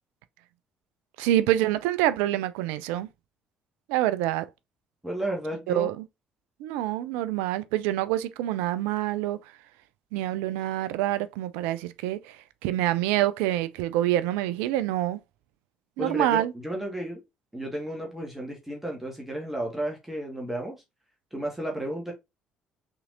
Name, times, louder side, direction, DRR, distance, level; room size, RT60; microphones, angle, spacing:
voice 1, 1.2-3.1 3.9-4.5 5.7-6.0 6.6-9.4 10.1-15.2 16.0-16.5, right 14 dB, 65° right, 0.4 m, -26 dB
voice 2, 5.0-5.9 16.0-17.2 17.5-20.8 21.3-22.1, right 1 dB, 5° right, 1.6 m, -33 dB
5.7 x 3.7 x 2.6 m
figure-of-eight pair, 50°, 3 cm